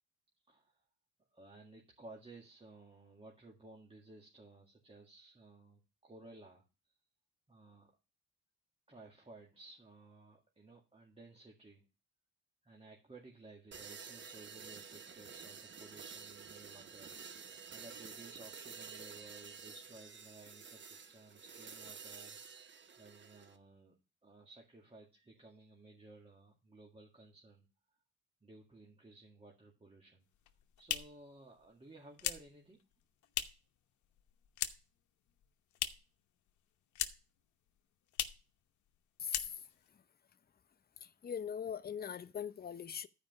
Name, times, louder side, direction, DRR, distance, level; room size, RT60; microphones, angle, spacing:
voice 1, 0.5-0.9 1.3-6.6 7.5-7.9 8.9-11.8 12.6-24.0 24.2-27.7 28.4-30.2 30.8-32.8, right 2 dB, 20° right, 2.0 m, -57 dB
sound 1, 13.7-23.6, right 6 dB, 40° right, 1.1 m, -51 dB
sound 2, 30.3-33.8 34.0-35.0 35.3-36.2 36.5-37.4 37.7-37.8 38.1-38.5 38.9-39.0 39.2-39.9, left 11 dB, 75° left, 1.0 m, -40 dB
voice 2, 39.2-39.5 41.0-43.1, left 8 dB, 30° left, 0.7 m, -41 dB
12.0 x 5.1 x 5.3 m
cardioid pair, 90°, 30 cm